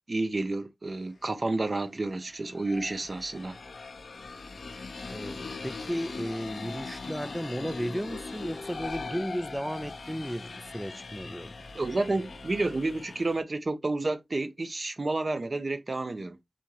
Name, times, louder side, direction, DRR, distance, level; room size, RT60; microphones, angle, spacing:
voice 1, 0.1-3.6 11.7-16.4, right 2 dB, 50° right, 0.7 m, -30 dB
sound 1, 1.0-1.1 2.1-13.4, left 3 dB, 80° left, 0.6 m, -41 dB
voice 2, 5.1-11.5, equal, 5° right, 0.3 m, -34 dB
4.2 x 3.6 x 3.1 m
wide cardioid pair, 80°, 0 cm